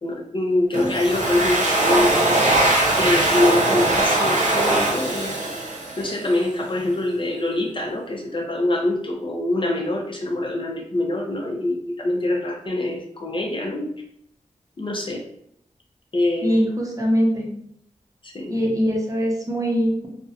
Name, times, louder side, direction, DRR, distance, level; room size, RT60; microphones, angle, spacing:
voice 1, 0.0-2.4 3.0-5.5 6.0-13.9 14.8-15.2 16.1-16.6 18.2-18.6, left 1 dB, 40° left, 1 dB, 0.4 m, -24 dB
Domestic sounds home sounds, 0.7-6.4, right 2 dB, 70° right, 0.7 m, -21 dB
voice 2, 16.4-17.5 18.5-20.1, equal, 25° right, -2 dB, 0.6 m, -22 dB
2.4 x 2.1 x 2.6 m, 0.69 s
wide cardioid pair, 105°, 13 cm